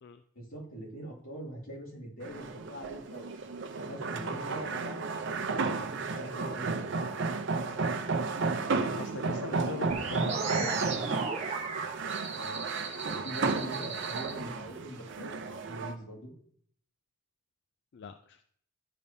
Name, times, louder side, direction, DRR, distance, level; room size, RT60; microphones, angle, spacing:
voice 1, 0.3-3.3 3.8-7.0 12.3-12.6 13.0-16.3, right 1 dB, 80° left, -4 dB, 2.6 m, -43 dB
sound 1, 2.2-15.9, right 4 dB, 55° right, 0.6 m, -33 dB
voice 2, 8.9-11.2 17.9-18.5, left 5 dB, 55° left, 9 dB, 0.3 m, -43 dB
sound 2, 9.9-14.3, right 4 dB, 30° right, 0.9 m, -36 dB
12.5 x 5.2 x 2.7 m, 0.62 s
head